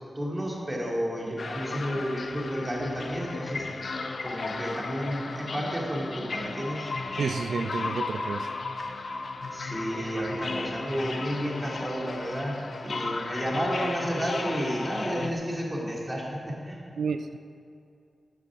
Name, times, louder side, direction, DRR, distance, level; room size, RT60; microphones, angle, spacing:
voice 1, 0.2-3.7 4.2-6.9 9.5-12.5 12.8-16.8, equal, 15° right, -3 dB, 2.2 m, -31 dB
sound 1, 1.4-15.3, left 3 dB, 55° left, 0.6 m, -35 dB
voice 2, 7.2-8.5 17.0-17.3, right 5 dB, 80° right, 9 dB, 0.3 m, -30 dB
9.6 x 9.4 x 6.2 m, 2.5 s
wide cardioid pair, 140°, 0 cm